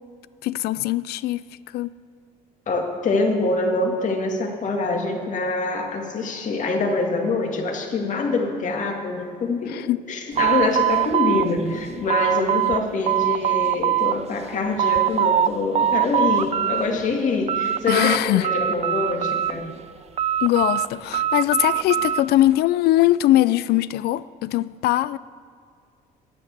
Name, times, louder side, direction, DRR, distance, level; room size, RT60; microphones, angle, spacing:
voice 1, 0.4-1.4 1.7-1.9 9.7-10.0 17.9-18.5 20.4-25.2, left 15 dB, 70° left, 0.4 m, -21 dB
voice 2, 2.7-19.7, left 3 dB, 50° left, 2.0 m, -25 dB
sound 1, 10.4-12.8 13.1-14.2 14.5-15.5 15.8-16.8 17.2-18.2 18.4-19.7 20.2-22.3, right 10 dB, 40° right, 0.4 m, -22 dB
10.5 x 8.9 x 8.1 m
cardioid pair, 110°, 17 cm